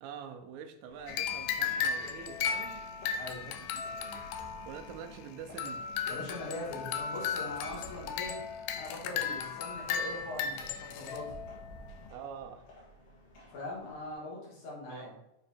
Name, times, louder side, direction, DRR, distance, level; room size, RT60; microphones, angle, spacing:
voice 1, 0.0-2.9 3.4-4.3 4.7-5.9 12.1-12.6 14.9-15.2, right 7 dB, 75° right, 5 dB, 1.8 m, -46 dB
sound 1, 0.8-14.1, right 1 dB, 55° left, 2.3 m, -55 dB
sound 2, 1.1-12.1, left 7 dB, 90° left, 2.1 m, -36 dB
voice 2, 6.1-8.4 8.8-11.4 13.5-15.2, left 2 dB, 70° left, -4 dB, 3.0 m, -41 dB
7.0 x 3.8 x 4.2 m, 0.86 s
omnidirectional pair, 3.6 m